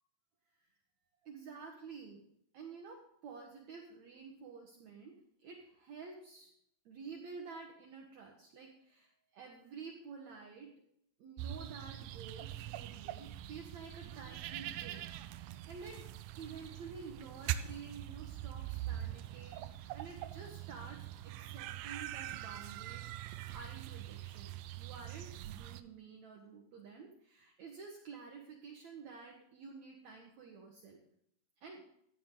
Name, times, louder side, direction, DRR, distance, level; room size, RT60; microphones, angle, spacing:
voice 1, 1.2-2.2 2.5-6.5 6.9-10.8 11.2-15.1 15.4-16.1 16.4-23.1 23.5-31.0 31.6-31.8, right 5 dB, 60° right, 1 dB, 2.2 m, -50 dB
sound 1, 11.4-25.8, right 13 dB, 80° right, 2.1 m, -43 dB
15.5 x 10.5 x 3.8 m, 0.73 s
omnidirectional pair, 4.2 m